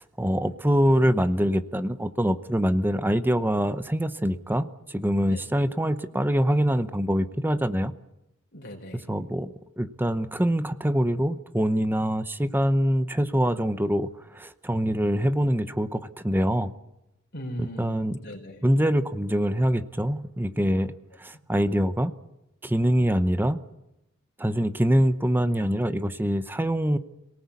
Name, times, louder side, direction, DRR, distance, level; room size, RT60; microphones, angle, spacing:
voice 1, 0.0-7.9 9.1-9.5 9.8-14.1 14.3-16.7 17.6-18.2 18.6-20.9 21.2-22.1 22.6-23.6 24.4-27.0, equal, 10° right, 11 dB, 0.8 m, -24 dB
voice 2, 8.5-9.1 13.5-13.6 17.3-18.7, equal, 50° left, 1 dB, 4.4 m, -39 dB
27.0 x 18.5 x 8.4 m, 0.91 s
head